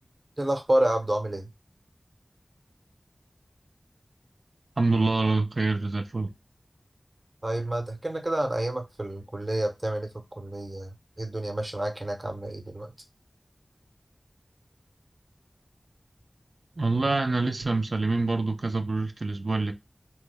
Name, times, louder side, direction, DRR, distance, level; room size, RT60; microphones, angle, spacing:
voice 1, 0.4-1.5 7.4-10.1 10.4-12.9, right 1 dB, 35° right, 0.8 m, -29 dB
voice 2, 4.8-6.3 16.8-19.7, right 3 dB, 70° right, 0.4 m, -26 dB
3.0 x 2.2 x 3.3 m
wide cardioid pair, 55°, 0 cm